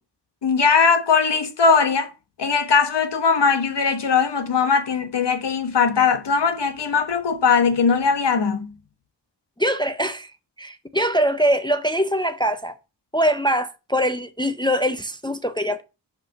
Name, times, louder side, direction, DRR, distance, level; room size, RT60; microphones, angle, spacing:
voice 1, 0.4-2.1 2.4-8.7, left 5 dB, 70° left, 1.3 m, -20 dB
voice 2, 9.6-10.3 10.6-12.7 13.1-15.8, equal, 10° left, 0.5 m, -22 dB
5.7 x 5.2 x 5.7 m
wide cardioid pair, 115°, 43 cm